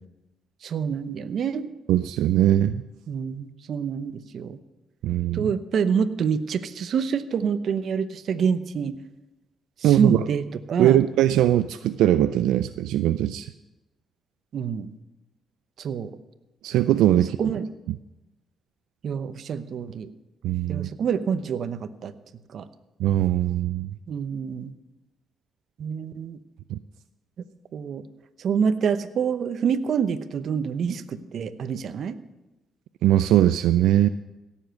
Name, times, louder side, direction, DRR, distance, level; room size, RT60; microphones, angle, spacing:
voice 1, 0.6-1.7 3.1-4.6 5.3-9.0 9.8-10.4 10.7-11.0 14.5-14.9 15.8-16.1 17.2-17.7 19.0-20.1 20.7-22.1 22.5-22.6 24.1-24.7 25.8-26.4 27.4-27.5 27.7-28.0 28.4-32.2, right 6 dB, 60° right, 12 dB, 0.8 m, -27 dB
voice 2, 1.9-2.8 5.0-5.5 9.8-10.3 10.8-13.5 16.6-17.5 20.4-20.9 23.0-23.9 26.7-26.8 33.0-34.1, right 12 dB, 90° right, 12 dB, 0.3 m, -21 dB
17.0 x 7.2 x 6.4 m, 1.0 s
cardioid pair, 90°, 0 cm